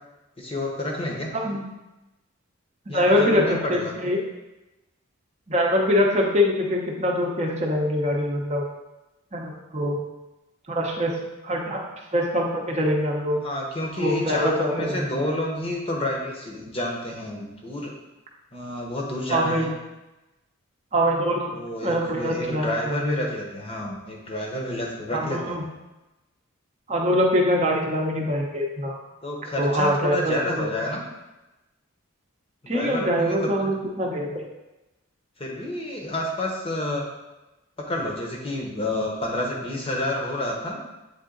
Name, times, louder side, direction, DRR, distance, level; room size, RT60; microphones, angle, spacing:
voice 1, 0.4-1.3 2.9-3.9 13.4-18.0 18.5-19.7 21.5-25.6 29.2-31.0 32.6-33.5 35.4-37.1 37.8-40.8, left 1 dB, 25° left, 0 dB, 0.8 m, -29 dB
voice 2, 1.3-1.6 2.9-4.2 5.5-8.6 9.3-10.0 10.7-11.2 11.4-11.8 12.1-13.4 14.0-15.1 19.3-19.7 20.9-21.5 21.8-23.1 25.1-25.6 26.9-29.0 29.6-30.7 32.7-34.4, equal, 30° right, -1 dB, 0.8 m, -23 dB
8.1 x 3.7 x 3.8 m, 1.0 s
head